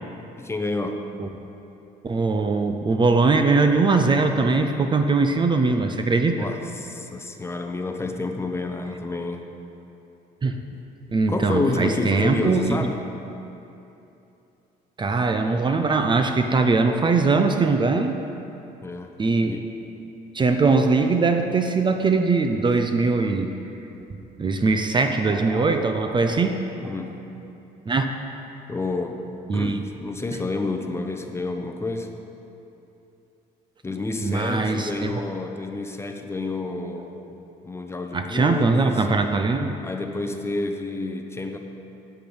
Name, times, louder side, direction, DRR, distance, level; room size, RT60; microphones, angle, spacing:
voice 1, 0.4-1.1 6.4-9.5 11.3-13.0 18.8-19.1 19.4-19.7 26.8-27.3 28.7-29.3 29.5-32.1 33.8-37.4 37.6-39.1 39.8-41.6, left 2 dB, 15° left, 4 dB, 0.9 m, -29 dB
voice 2, 2.0-6.5 10.4-10.6 11.1-12.8 15.0-18.2 19.2-19.5 20.3-23.5 24.1-26.9 27.9-28.0 29.5-29.8 34.2-35.1 38.1-39.8, right 3 dB, 25° right, 6 dB, 0.7 m, -21 dB
8.3 x 8.1 x 8.9 m, 2.9 s
cardioid pair, 110°, 17 cm